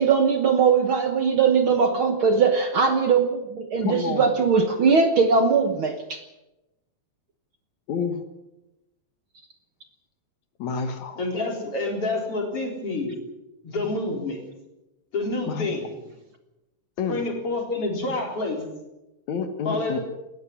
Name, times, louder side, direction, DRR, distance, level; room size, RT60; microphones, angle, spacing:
voice 1, 0.0-6.2, right 5 dB, 55° right, 7 dB, 1.7 m, -20 dB
voice 2, 3.8-4.3 7.9-8.2 10.6-11.2 15.5-15.7 17.0-17.2 19.3-20.0, left 6 dB, 70° left, 7 dB, 2.7 m, -28 dB
voice 3, 11.1-13.2 13.6-14.4 15.1-16.0 17.1-18.6 19.6-20.0, left 2 dB, 50° left, 2 dB, 5.1 m, -28 dB
19.0 x 14.0 x 9.9 m, 0.98 s
omnidirectional pair, 3.4 m